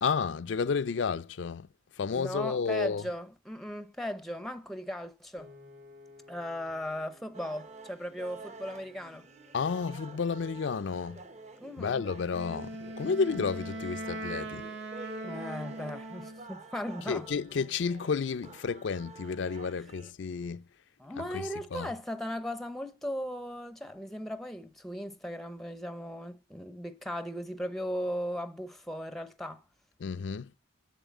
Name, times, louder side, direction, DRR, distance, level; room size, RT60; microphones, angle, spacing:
voice 1, 0.0-1.7 2.0-3.0 9.5-11.2 11.8-12.7 13.0-14.7 17.1-20.6 21.7-21.9 30.0-30.5, left 5 dB, 65° left, 0.4 m, -31 dB
voice 2, 2.1-5.5 6.3-9.3 11.6-12.1 15.2-17.3 21.0-29.6, equal, ahead, 0.6 m, -37 dB
Piano, 5.4-17.6, left 2 dB, 85° right, 2.7 m, -60 dB
sound 1, 7.3-20.1, right 3 dB, 35° right, 0.8 m, -49 dB
Wind instrument woodwind instrument, 12.3-16.5, right 1 dB, 70° right, 1.4 m, -40 dB
7.3 x 7.1 x 8.2 m
head